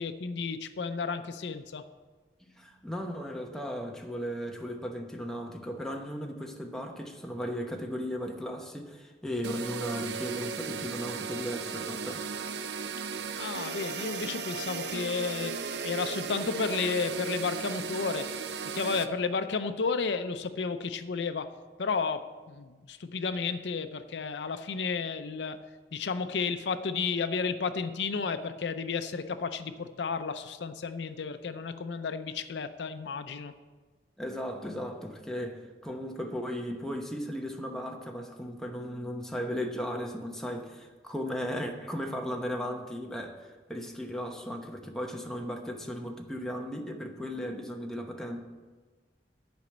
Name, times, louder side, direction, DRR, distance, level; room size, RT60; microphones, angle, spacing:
voice 1, 0.0-1.8 13.4-15.5 15.8-18.3 18.7-21.5 21.8-25.6 25.9-33.5, left 5 dB, 75° left, 10 dB, 0.5 m, -32 dB
voice 2, 2.4-12.2 34.2-48.4, equal, 5° left, 2 dB, 0.9 m, -36 dB
sound 1, 9.4-19.1, right 5 dB, 70° right, 0.5 m, -36 dB
10.5 x 5.1 x 7.8 m, 1.3 s
head